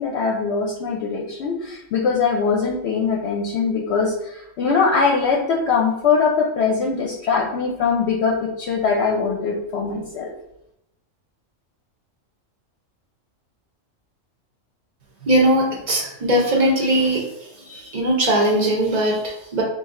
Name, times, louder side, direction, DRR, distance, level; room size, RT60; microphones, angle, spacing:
voice 1, 0.0-10.3, left 5 dB, 65° left, -1 dB, 0.8 m, -22 dB
voice 2, 15.3-19.6, right 1 dB, 45° right, -2 dB, 0.5 m, -20 dB
3.2 x 2.7 x 3.6 m, 0.81 s
omnidirectional pair, 1.4 m